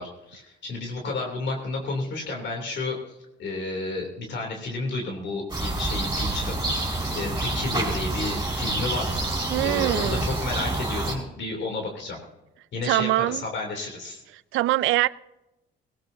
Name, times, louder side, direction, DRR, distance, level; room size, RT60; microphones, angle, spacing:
voice 1, 0.0-6.6 7.1-9.1 9.6-12.2 12.7-14.2, left 2 dB, 65° left, 1 dB, 3.0 m, -31 dB
sound 1, 5.5-11.1, right 2 dB, 20° right, 4.8 m, -28 dB
voice 2, 9.5-10.2 12.8-13.4 14.5-15.1, right 17 dB, 85° right, 19 dB, 0.4 m, -23 dB
17.5 x 17.5 x 2.7 m, 0.95 s
cardioid pair, 90°, 20 cm